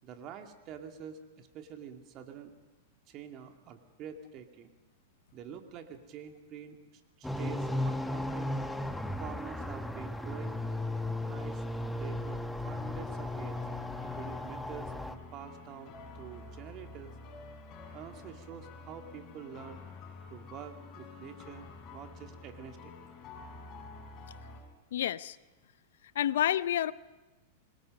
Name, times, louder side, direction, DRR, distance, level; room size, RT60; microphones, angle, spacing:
voice 1, 0.0-2.5 3.1-4.7 5.3-6.8 7.2-8.6 9.2-10.6 11.2-13.7 14.1-17.1 17.9-19.8 20.3-23.0, right 8 dB, 40° right, 5 dB, 2.5 m, -47 dB
sound 1, 7.2-15.1, left 1 dB, 5° left, 1.2 m, -35 dB
sound 2, 12.6-24.6, left 4 dB, 35° left, 6.4 m, -49 dB
voice 2, 24.9-25.4 26.1-26.9, left 11 dB, 70° left, 18 dB, 0.6 m, -29 dB
26.5 x 20.5 x 5.4 m, 1.1 s
hypercardioid pair, 105°, 0 cm